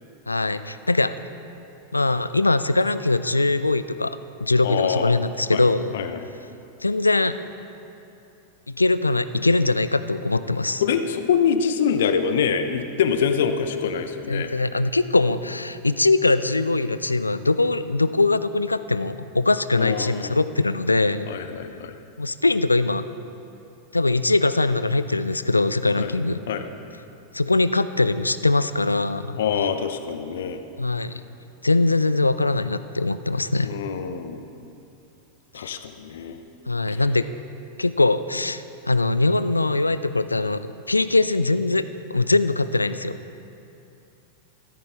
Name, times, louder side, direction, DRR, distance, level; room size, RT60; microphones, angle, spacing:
voice 1, 0.3-1.1 1.9-5.9 6.8-7.3 8.7-10.8 14.3-21.3 22.2-23.0 23.9-26.4 27.3-29.4 30.8-31.1 31.6-33.7 35.5-35.7 36.7-37.3 37.8-41.8 42.1-43.2, left 2 dB, 80° left, 14 dB, 0.3 m, -22 dB
voice 2, 4.6-5.2 5.5-5.7 5.9-6.2 10.8-14.5 19.8-20.4 21.3-21.9 26.0-26.1 26.5-26.7 29.4-30.6 33.6-34.5 35.5-36.4 36.9-37.0, left 7 dB, 60° left, 9 dB, 0.7 m, -25 dB
14.5 x 13.5 x 3.4 m, 2.8 s
figure-of-eight pair, 90°, 0 cm